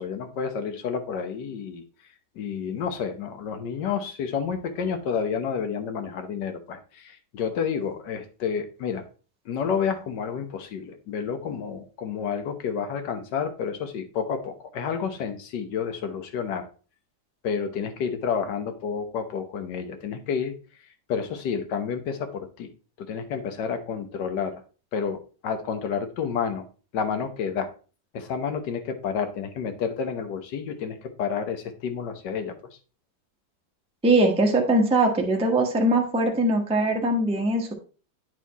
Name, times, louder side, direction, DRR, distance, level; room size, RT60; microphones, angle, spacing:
voice 1, 0.0-1.8 2.3-9.0 9.4-16.7 17.4-20.5 21.1-22.7 23.0-24.6 24.9-26.6 26.9-27.7 28.1-32.5, left 6 dB, 65° left, 8 dB, 1.5 m, -30 dB
voice 2, 34.0-37.7, right 1 dB, 5° right, 1 dB, 0.7 m, -21 dB
9.2 x 4.2 x 4.0 m, 0.37 s
omnidirectional pair, 2.0 m